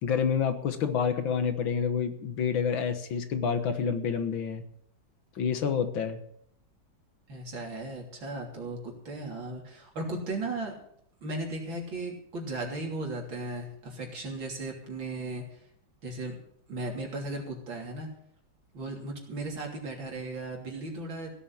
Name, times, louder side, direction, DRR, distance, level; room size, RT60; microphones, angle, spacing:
voice 1, 0.0-4.6 5.4-6.2, left 7 dB, 80° left, 9 dB, 2.1 m, -28 dB
voice 2, 7.3-10.8 11.2-15.6 16.0-16.4 16.7-18.1 18.7-21.3, right 2 dB, 80° right, 0 dB, 4.0 m, -36 dB
16.5 x 7.3 x 8.6 m, 0.71 s
omnidirectional pair, 2.1 m